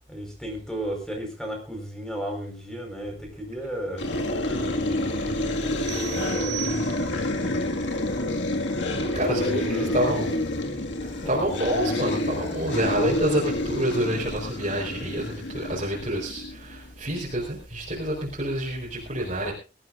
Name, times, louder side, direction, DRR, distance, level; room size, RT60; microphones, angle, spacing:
voice 1, 0.1-5.3 5.6-7.5 9.0-10.0 11.2-11.9, right 1 dB, 5° left, 2 dB, 4.7 m, -35 dB
sound 1, 4.0-16.9, left 1 dB, 65° left, 2.0 m, -28 dB
sound 2, 5.9-7.4, right 18 dB, 85° right, 3.0 m, -36 dB
voice 2, 9.1-10.4 11.2-19.5, right 1 dB, 35° right, -3 dB, 4.3 m, -27 dB
22.5 x 14.5 x 2.5 m, 0.32 s
head